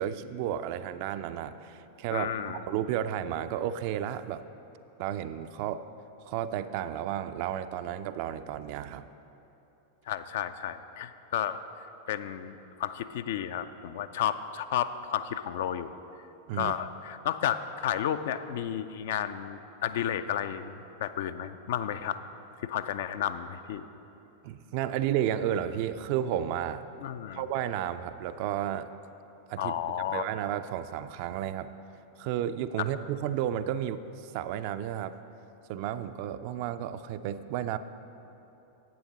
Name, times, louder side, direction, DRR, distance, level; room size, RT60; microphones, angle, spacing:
voice 1, 0.0-4.4 5.0-5.8 6.3-9.1 16.5-16.8 24.4-26.8 27.3-28.9 29.5-29.7 30.1-31.7 32.2-35.1 35.7-37.8, right 10 dB, 45° right, 11 dB, 0.3 m, -32 dB
voice 2, 2.1-2.6 10.1-11.6 12.1-15.9 16.5-22.2 22.6-23.9 27.0-27.4 29.6-30.2, left 10 dB, 55° left, 11 dB, 0.3 m, -32 dB
10.5 x 8.4 x 3.9 m, 3.0 s
figure-of-eight pair, 90°, 0 cm